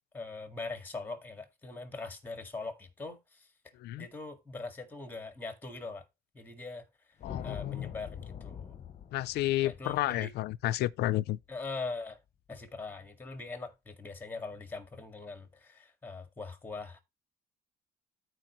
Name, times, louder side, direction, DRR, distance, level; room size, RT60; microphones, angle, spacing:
voice 1, 0.1-3.5 4.0-6.1 6.3-6.9 7.4-8.8 9.6-10.3 11.5-12.2 12.5-17.0, left 3 dB, 10° left, 2.0 m, -41 dB
voice 2, 3.7-4.1 7.2-7.9 9.1-11.4, left 15 dB, 75° left, 0.5 m, -31 dB
sound 1, 7.2-11.6, left 8 dB, 40° left, 0.8 m, -45 dB
13.0 x 4.6 x 3.1 m
cardioid pair, 110°, 17 cm